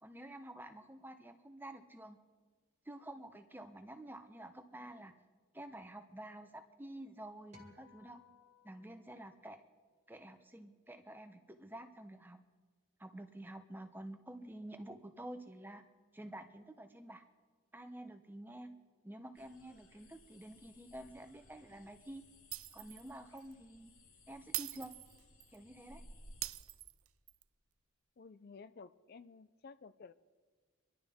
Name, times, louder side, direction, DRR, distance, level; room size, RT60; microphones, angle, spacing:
voice 1, 0.0-2.2 2.9-5.1 5.5-8.2 8.6-9.6 10.1-12.4 13.0-15.8 16.1-17.2 17.7-18.7 19.0-22.2 22.7-23.9 24.3-25.0 25.5-26.0, right 1 dB, 10° right, 8 dB, 0.7 m, -49 dB
sound 1, 7.5-10.0, left 4 dB, 30° right, 1.7 m, -63 dB
sound 2, 19.3-26.5, left 1 dB, 75° left, 2.1 m, -60 dB
Shatter, 22.5-23.1 23.4-23.5 24.5-25.6 26.4-27.4, right 16 dB, 75° right, 0.4 m, -42 dB
voice 2, 28.2-30.1, left 4 dB, 45° left, 13 dB, 0.4 m, -54 dB
25.5 x 11.5 x 3.5 m, 1.5 s
head